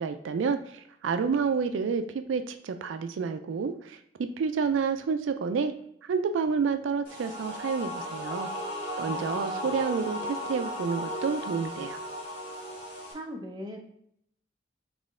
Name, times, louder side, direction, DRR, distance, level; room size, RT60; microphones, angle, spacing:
voice 1, 0.0-5.7 6.0-8.5 9.0-12.0, right 5 dB, 85° right, 8 dB, 0.4 m, -29 dB
sound 1, 7.0-13.1, equal, 25° left, 1.7 m, -35 dB
voice 2, 9.1-9.6 13.1-13.8, equal, 20° right, 1 dB, 0.6 m, -40 dB
4.1 x 3.1 x 3.6 m, 0.71 s
head